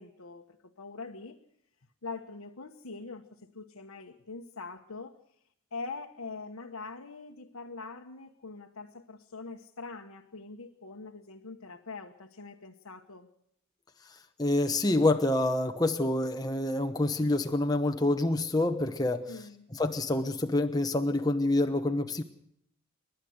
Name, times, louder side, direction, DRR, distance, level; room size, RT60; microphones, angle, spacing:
voice 1, 0.0-1.4 2.0-5.1 5.7-13.3 19.3-19.7, left 3 dB, 85° left, 1 dB, 1.3 m, -43 dB
voice 2, 14.4-19.3 19.7-22.2, left 2 dB, 20° left, 5 dB, 0.9 m, -27 dB
29.0 x 12.0 x 8.0 m, 0.74 s
head